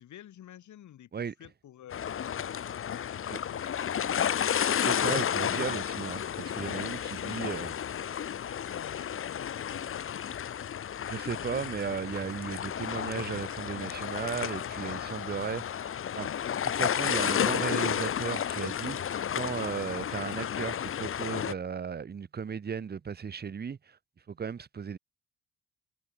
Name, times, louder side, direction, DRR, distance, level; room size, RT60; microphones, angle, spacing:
voice 1, 0.0-1.1 1.4-4.7 7.1-7.8 8.5-10.5, left 11 dB, 70° left, 5.3 m, -50 dB
sound 1, 1.9-21.5, left 9 dB, 45° left, 0.9 m, -32 dB
voice 2, 4.8-7.7 11.1-16.3 16.6-24.0 24.3-25.0, right 6 dB, 35° right, 1.1 m, -36 dB
cardioid pair, 90°, 30 cm